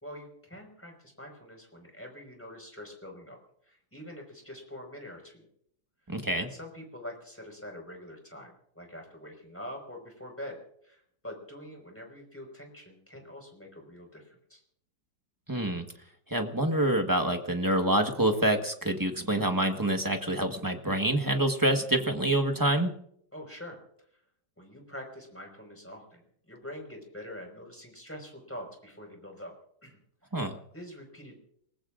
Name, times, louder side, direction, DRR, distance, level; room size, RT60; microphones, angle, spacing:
voice 1, 0.0-3.4 3.6-5.4 6.4-10.6 10.8-14.6 23.3-23.8 24.6-29.5 29.8-30.0 30.7-31.4, left 1 dB, 5° left, 2 dB, 5.0 m, -45 dB
voice 2, 6.1-6.5 15.5-15.8 16.3-22.9 30.3-30.6, right 1 dB, 15° right, 5 dB, 1.1 m, -26 dB
28.5 x 20.0 x 2.5 m, 0.69 s
omnidirectional pair, 2.0 m